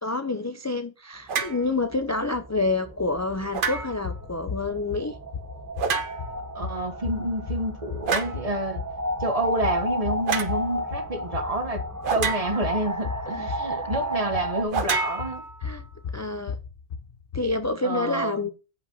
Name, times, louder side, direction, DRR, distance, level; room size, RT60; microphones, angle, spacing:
voice 1, 0.0-5.2 13.3-13.5 14.1-14.3 15.6-15.8 16.1-16.6 17.3-18.5, left 3 dB, 25° left, 0.4 m, -28 dB
sound 1, 1.3-1.6 3.5-4.1 5.8-6.4 8.1-8.4 10.3-10.6 12.0-12.8 14.7-15.8, right 5 dB, 60° right, 1.0 m, -28 dB
sound 2, 1.4-14.7, equal, 20° right, 0.8 m, -33 dB
sound 3, 3.8-17.7, left 6 dB, 65° left, 0.9 m, -37 dB
voice 2, 6.5-8.8 9.2-11.8 12.1-15.4 17.8-18.4, right 1 dB, 35° right, 1.4 m, -28 dB
8.0 x 5.5 x 5.4 m
omnidirectional pair, 1.0 m